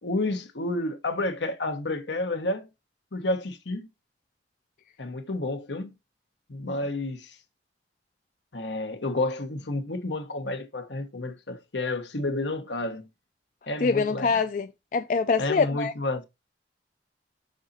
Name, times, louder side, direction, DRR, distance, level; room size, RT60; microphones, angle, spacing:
voice 1, 0.0-2.7 3.1-3.9 5.0-5.9 6.5-7.4 8.5-13.1 13.7-14.4 15.4-16.2, left 2 dB, 80° left, 1.1 m, -30 dB
voice 2, 13.8-15.9, left 4 dB, 45° left, 0.3 m, -25 dB
6.4 x 3.9 x 4.1 m
head